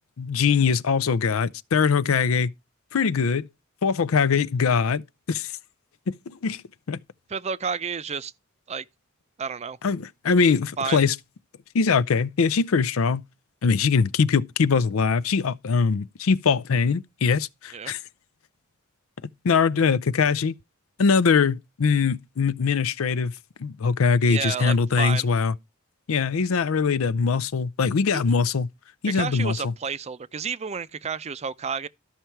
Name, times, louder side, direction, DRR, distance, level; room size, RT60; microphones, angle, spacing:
voice 1, 0.2-2.5 2.9-3.4 3.8-5.0 5.3-5.5 6.3-6.6 6.9-7.0 9.8-11.1 11.7-13.2 13.6-18.0 19.4-20.5 21.0-23.3 23.6-25.5 26.1-28.7 29.0-29.7, left 5 dB, 90° left, 0.5 m, -22 dB
voice 2, 7.3-8.3 8.7-8.9 9.4-9.8 10.8-11.0 17.7-17.9 24.3-25.3 28.1-28.3 29.1-31.9, right 6 dB, 30° right, 0.5 m, -31 dB
12.5 x 5.8 x 4.5 m
head